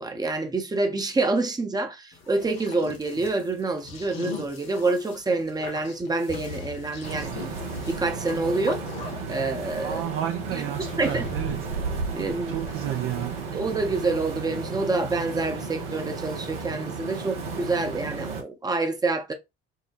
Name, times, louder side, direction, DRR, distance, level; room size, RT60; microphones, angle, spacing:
voice 1, 0.0-7.3 7.9-8.8 9.3-10.0 10.5-10.6 11.0-11.2 12.1-12.6 13.5-19.3, right 3 dB, 15° right, 0.7 m, -27 dB
sound 1, 2.1-9.2, left 5 dB, 80° left, 0.6 m, -42 dB
sound 2, 2.1-4.5 5.7-5.8 6.3-13.8, left 4 dB, 65° left, 1.2 m, -45 dB
sound 3, 7.0-18.4, right 4 dB, 70° right, 0.8 m, -33 dB
voice 2, 9.8-11.7 12.5-13.4, right 11 dB, 45° right, 0.4 m, -31 dB
4.7 x 2.1 x 2.5 m
figure-of-eight pair, 50°, 30 cm